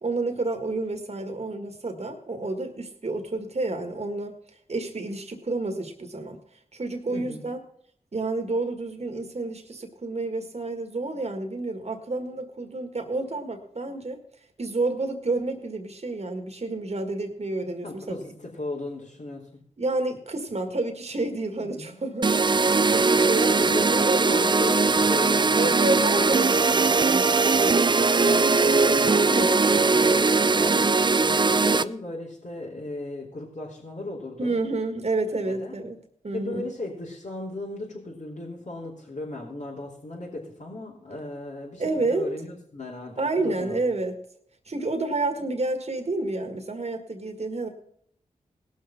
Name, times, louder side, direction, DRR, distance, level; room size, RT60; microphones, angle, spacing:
voice 1, 0.0-4.3 4.7-6.4 6.7-7.6 8.1-14.2 14.6-18.2 19.8-24.5 25.6-28.0 29.2-29.6 34.4-36.7 41.8-42.3 43.2-44.2 44.7-47.7, right 2 dB, 50° right, 5 dB, 1.7 m, -29 dB
voice 2, 7.1-7.5 17.8-19.6 21.6-22.0 23.4-23.9 24.2-25.8 26.2-26.8 28.3-30.9 31.2-34.6 35.4-35.8 36.3-43.8, left 2 dB, 60° left, -6 dB, 3.4 m, -36 dB
sound 1, 22.2-31.8, right 4 dB, 30° right, 0.5 m, -20 dB
17.5 x 6.3 x 5.8 m, 0.65 s
cardioid pair, 40°, 14 cm